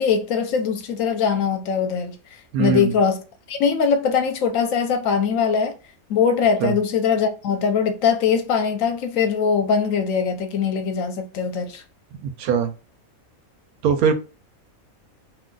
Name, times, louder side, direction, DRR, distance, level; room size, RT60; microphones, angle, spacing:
voice 1, 0.0-2.1 2.6-3.2 3.5-5.7 6.1-11.8, left 6 dB, 70° left, 1.0 m, -21 dB
voice 2, 2.5-2.9 6.6-6.7 12.2-12.7 13.8-14.1, right 7 dB, 85° right, 1.1 m, -21 dB
2.6 x 2.3 x 3.7 m
omnidirectional pair, 1.5 m